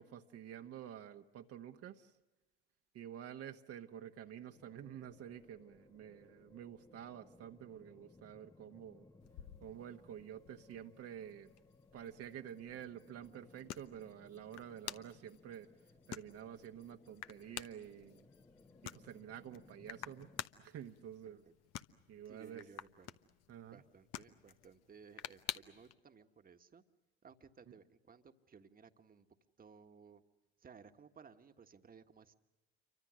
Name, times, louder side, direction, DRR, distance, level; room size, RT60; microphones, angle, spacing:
voice 1, 0.0-2.2 2.9-9.1 9.6-11.5 11.9-15.7 16.1-18.3 18.8-21.4 22.1-22.6 23.5-23.8, right 10 dB, 50° right, 4 dB, 1.4 m, -50 dB
sound 1, 4.5-20.5, left 2 dB, 10° left, 1.0 m, -64 dB
sound 2, 9.2-25.9, left 12 dB, 55° left, 1.2 m, -51 dB
sound 3, 10.7-21.7, left 8 dB, 85° left, 5.5 m, -79 dB
voice 2, 21.2-21.5 22.3-23.2 23.7-26.8 27.2-29.3 29.6-30.2 30.6-32.3, right 6 dB, 30° right, 8 dB, 1.6 m, -59 dB
28.5 x 24.5 x 6.4 m, 1.1 s
hypercardioid pair, 65°, 31 cm